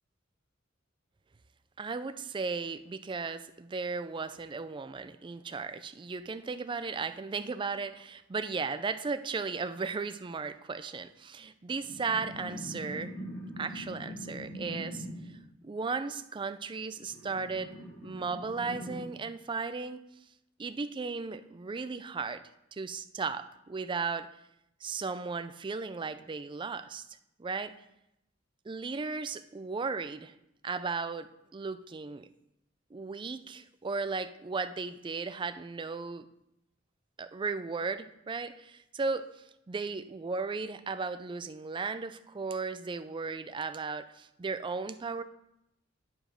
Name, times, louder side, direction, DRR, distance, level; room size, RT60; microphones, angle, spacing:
voice 1, 1.8-13.2 13.6-15.1 15.6-17.8 18.0-20.1 20.6-22.4 22.7-24.3 24.8-27.0 27.4-27.7 28.7-30.3 30.6-32.3 32.9-36.2 37.2-45.2, right 4 dB, 25° right, 11 dB, 0.4 m, -36 dB
sound 1, 11.8-15.4 17.0-19.1, equal, 70° left, 2.1 m, -42 dB
9.8 x 4.9 x 5.1 m, 0.84 s
head